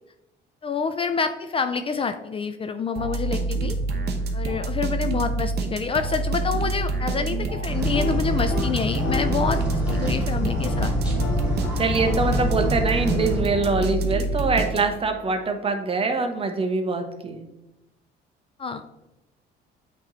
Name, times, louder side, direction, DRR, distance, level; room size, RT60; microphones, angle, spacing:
voice 1, 0.6-3.8 4.3-10.9 18.6-18.8, left 5 dB, 30° left, 9 dB, 0.4 m, -27 dB
sound 1, 3.0-15.2, right 3 dB, 60° right, 1.0 m, -27 dB
sound 2, 7.7-13.4, left 1 dB, 5° right, 1.9 m, -27 dB
sound 3, 7.8-10.2 10.5-10.9 11.2-15.0, left 4 dB, 80° left, 1.0 m, -35 dB
voice 2, 11.8-17.4, right 3 dB, 30° right, 6 dB, 0.9 m, -24 dB
8.1 x 3.1 x 4.0 m, 0.96 s
cardioid pair, 100°, 19 cm